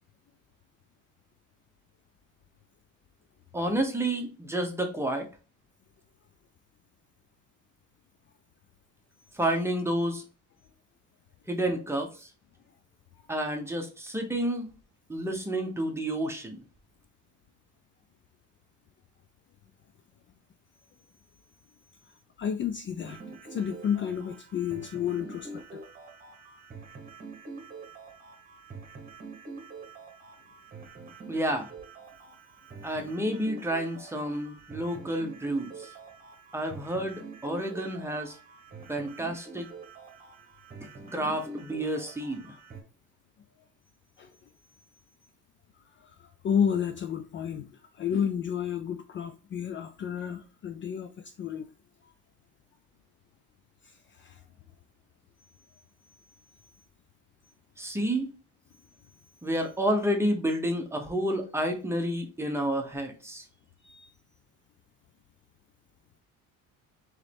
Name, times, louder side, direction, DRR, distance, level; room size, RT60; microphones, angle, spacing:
voice 1, 3.5-5.3 9.3-10.2 11.5-12.3 13.3-14.7 15.1-16.6 31.3-31.7 32.8-35.9 36.5-38.4 38.9-39.7 41.0-42.5 57.8-58.3 59.4-63.4, right 1 dB, 10° right, 0.9 m, -30 dB
voice 2, 22.4-23.2 23.5-25.8 44.2-44.3 46.0-51.7 52.0-52.1 53.8-54.4 63.8-64.1, left 8 dB, 40° left, 0.4 m, -31 dB
sound 1, 23.0-42.8, right 3 dB, 25° right, 1.2 m, -46 dB
3.6 x 3.2 x 3.4 m
cardioid pair, 120°, 32 cm